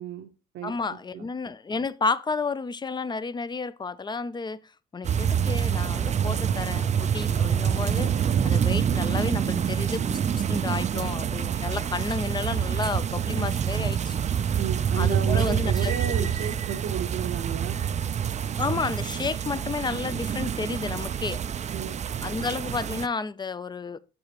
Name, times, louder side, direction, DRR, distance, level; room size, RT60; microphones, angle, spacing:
voice 1, 0.0-1.2 14.5-17.8 21.7-22.0, right 8 dB, 80° right, 0.9 m, -34 dB
voice 2, 0.6-4.6 4.9-14.2 15.0-16.3 18.6-21.4 22.2-24.0, left 4 dB, 20° left, 0.4 m, -31 dB
sound 1, 5.0-23.1, right 8 dB, 35° right, 0.4 m, -26 dB
6.7 x 6.4 x 3.0 m
cardioid pair, 90°, 20 cm